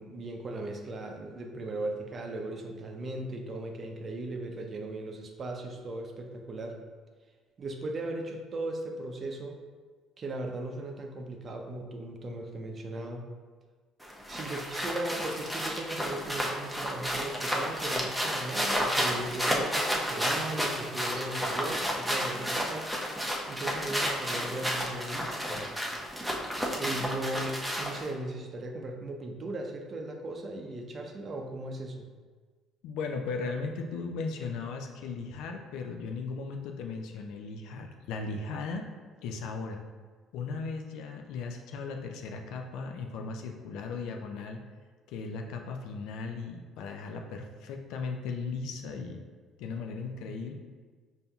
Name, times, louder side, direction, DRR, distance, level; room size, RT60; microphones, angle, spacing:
voice 1, 0.0-6.8 7.6-9.6 10.2-13.3 14.3-22.9 23.5-25.7 26.7-32.0, right 2 dB, 45° right, 3 dB, 0.6 m, -37 dB
sound 1, 14.0-28.1, equal, 5° right, 0.7 m, -31 dB
voice 2, 32.8-38.8 39.2-39.8 40.3-44.6 45.1-49.2 49.6-50.5, left 4 dB, 75° left, 3 dB, 0.4 m, -37 dB
5.3 x 2.7 x 2.3 m, 1.5 s
supercardioid pair, 70°, 0 cm